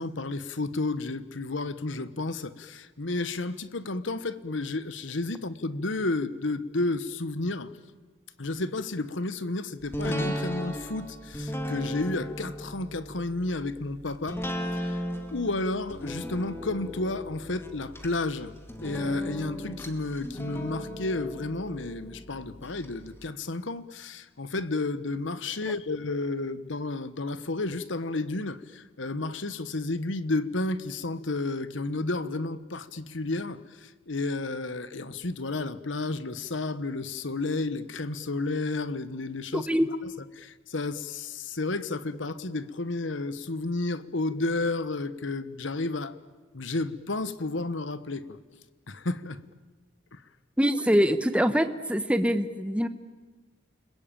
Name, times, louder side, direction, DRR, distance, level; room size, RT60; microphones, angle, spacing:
voice 1, 0.0-7.7 8.4-14.4 14.7-15.0 15.3-18.5 18.8-39.7 40.3-46.2 46.5-48.4 48.9-49.4 50.1-50.2, left 2 dB, 75° left, 14 dB, 1.2 m, -32 dB
sound 1, 9.9-22.9 23.3-23.4, equal, 10° left, 2.2 m, -36 dB
voice 2, 39.5-39.9 50.6-52.9, equal, 5° right, 9 dB, 1.1 m, -24 dB
30.0 x 21.0 x 9.0 m, 1.3 s
head